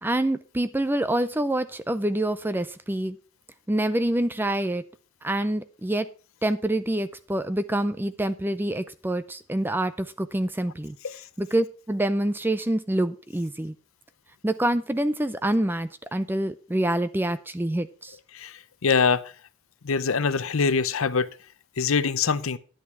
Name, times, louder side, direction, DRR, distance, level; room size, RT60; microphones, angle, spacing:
voice 1, 0.0-3.2 3.7-4.8 5.2-6.1 6.4-11.0 11.4-13.7 14.4-18.2, right 1 dB, 10° right, 0.4 m, -26 dB
voice 2, 18.3-19.2 19.8-21.3 21.8-22.6, left 5 dB, 70° left, 0.7 m, -24 dB
10.5 x 8.5 x 4.7 m
head